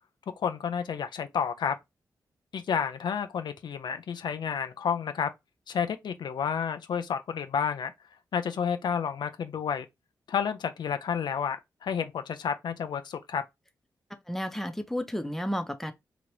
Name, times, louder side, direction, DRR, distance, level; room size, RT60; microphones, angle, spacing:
voice 1, 0.4-1.8 2.5-5.3 5.7-7.9 8.3-9.9 10.3-13.4, left 7 dB, 70° left, 0.5 m, -30 dB
voice 2, 14.3-15.9, equal, 5° left, 0.7 m, -32 dB
2.8 x 2.5 x 3.2 m
cardioid pair, 50°, 8 cm